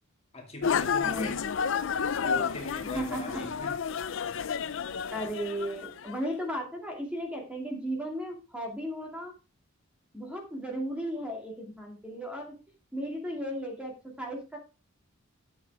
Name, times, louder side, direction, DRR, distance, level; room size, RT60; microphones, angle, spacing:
voice 1, 0.3-1.4 2.2-3.8, left 2 dB, 30° left, 2.5 m, -40 dB
sound 1, 0.6-6.2, left 6 dB, 60° left, 0.5 m, -31 dB
voice 2, 2.8-3.4 5.1-9.3 10.1-12.5 12.9-14.6, equal, 5° right, 2.5 m, -35 dB
12.0 x 7.5 x 3.5 m
head